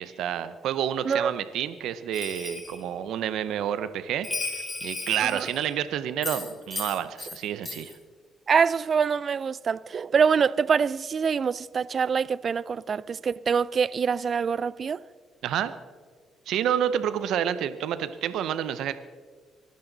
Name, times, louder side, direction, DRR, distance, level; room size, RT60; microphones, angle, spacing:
voice 1, 0.0-8.0 15.4-15.7 16.5-18.9, right 10 dB, 80° right, 0.7 m, -29 dB
Bell, 2.1-2.8 4.2-5.7 6.2-7.4 7.6-7.9, left 3 dB, 25° left, 4.3 m, -35 dB
voice 2, 8.5-15.0, right 6 dB, 45° right, 0.4 m, -25 dB
24.0 x 12.0 x 4.0 m
cardioid pair, 90°, 0 cm